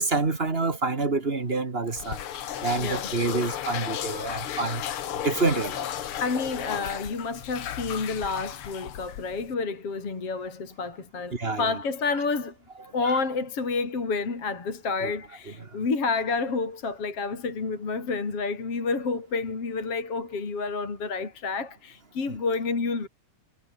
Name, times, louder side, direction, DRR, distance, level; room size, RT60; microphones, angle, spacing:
voice 1, 0.0-2.2 2.6-4.8 5.2-5.8 11.3-11.8 13.0-13.1 15.0-15.1 22.3-22.4, right 3 dB, 25° right, 1.5 m, -27 dB
sound 1, 1.9-9.5, left 10 dB, 60° left, 1.5 m, -34 dB
voice 2, 2.8-3.1 6.2-12.6 12.9-23.1, left 4 dB, 40° left, 5.2 m, -29 dB
omnidirectional pair, 4.0 m